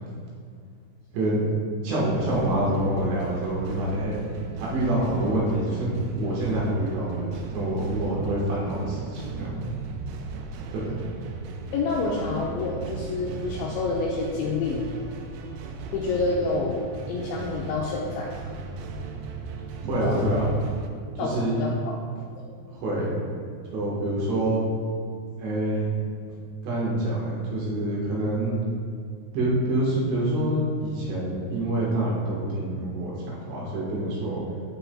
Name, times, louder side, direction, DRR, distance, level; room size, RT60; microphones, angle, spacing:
voice 1, 1.8-4.1 4.6-9.7 10.7-10.9 19.8-20.5 21.1-21.7 22.7-23.2 23.7-24.6 25.4-25.9 26.6-28.6 29.3-34.4, right 1 dB, 65° right, -5 dB, 3.4 m, -26 dB
sound 1, 2.1-20.9, right 4 dB, 90° right, 3.4 m, -37 dB
voice 2, 11.7-14.8 15.9-16.8 17.1-18.3 20.0-20.2 21.2-21.9 22.4-22.7, left 3 dB, 85° left, -3 dB, 2.6 m, -28 dB
15.0 x 6.8 x 2.3 m, 2.1 s
omnidirectional pair, 6.0 m